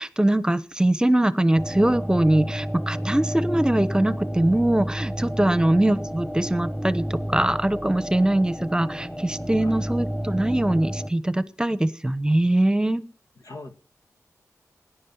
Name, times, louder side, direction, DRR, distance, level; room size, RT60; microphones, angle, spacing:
voice 1, 0.0-13.0, right 1 dB, 15° right, 14 dB, 1.0 m, -22 dB
sound 1, 1.5-11.1, equal, 5° left, 1.6 m, -31 dB
voice 2, 5.5-5.8 9.6-9.8 13.4-13.7, left 2 dB, 85° left, 6 dB, 1.9 m, -40 dB
17.5 x 10.5 x 5.5 m, 0.42 s
cardioid pair, 60°, 6 cm